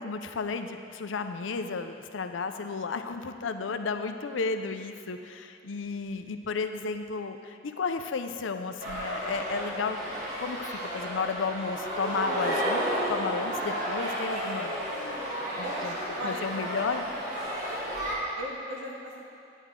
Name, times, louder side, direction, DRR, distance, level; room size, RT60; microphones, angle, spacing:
voice 1, 0.0-10.0 10.4-14.7 15.6-15.9 16.2-17.0, left 4 dB, 85° left, 8 dB, 0.5 m, -33 dB
voice 2, 1.6-2.0 4.9-5.0 15.6-16.7 18.4-19.2, equal, 90° right, -4 dB, 2.0 m, -39 dB
sound 1, 8.8-18.1, equal, 40° right, 2.2 m, -32 dB
10.5 x 9.1 x 3.7 m, 2.5 s
head